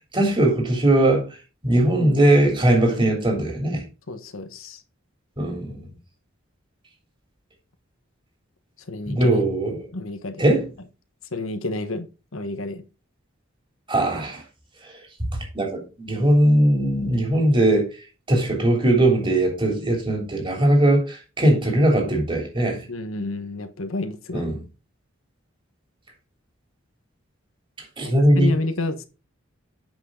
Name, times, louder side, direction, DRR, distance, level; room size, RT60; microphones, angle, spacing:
voice 1, 0.1-1.3 1.6-3.8 5.4-5.9 9.1-9.9 10.4-10.7 13.9-14.4 14.8-15.0 15.3-17.9 18.3-22.9 24.3-24.6 28.0-28.5, right 1 dB, 25° right, 3.2 m, -20 dB
voice 2, 4.1-4.8 8.8-9.4 9.7-10.4 11.3-12.1 12.3-12.8 22.9-24.5 28.0-29.0, left 2 dB, 80° left, 1.3 m, -30 dB
8.5 x 6.3 x 3.8 m
head